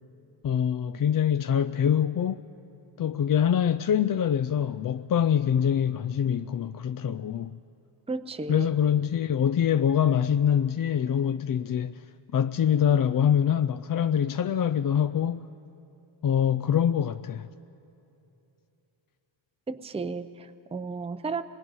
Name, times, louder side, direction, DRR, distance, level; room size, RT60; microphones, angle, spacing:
voice 1, 0.4-2.4 3.0-7.6 8.5-12.0 12.3-15.5 16.2-17.5, left 9 dB, 45° left, 0.4 m, -24 dB
voice 2, 8.1-8.7 19.7-21.4, right 4 dB, 15° right, 0.6 m, -33 dB
25.0 x 20.0 x 5.5 m
wide cardioid pair, 95°, 48 cm